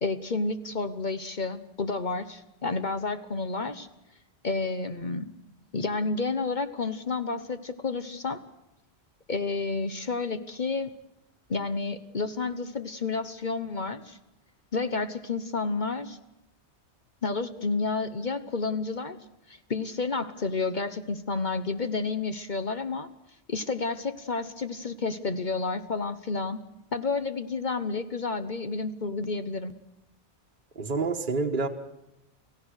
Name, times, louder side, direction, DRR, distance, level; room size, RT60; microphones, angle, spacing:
voice 1, 0.0-3.9 4.4-5.3 5.7-8.4 9.3-10.9 11.5-14.2 14.7-16.2 17.2-19.2 19.5-23.1 23.5-26.6 26.9-29.7, left 3 dB, 45° left, 9 dB, 1.2 m, -30 dB
voice 2, 30.7-31.7, right 3 dB, 50° right, 3 dB, 1.5 m, -27 dB
29.0 x 16.5 x 6.5 m, 0.89 s
omnidirectional pair, 1.1 m